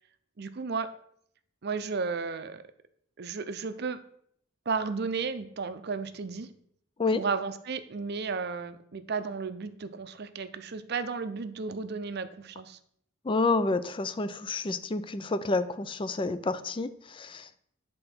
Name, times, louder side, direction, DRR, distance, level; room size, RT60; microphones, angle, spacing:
voice 1, 0.4-0.9 1.6-2.6 3.2-4.0 4.7-6.5 7.1-12.8, right 5 dB, 55° right, 10 dB, 0.6 m, -33 dB
voice 2, 13.2-17.5, left 3 dB, 25° left, 13 dB, 0.4 m, -29 dB
9.0 x 3.8 x 5.9 m, 0.67 s
head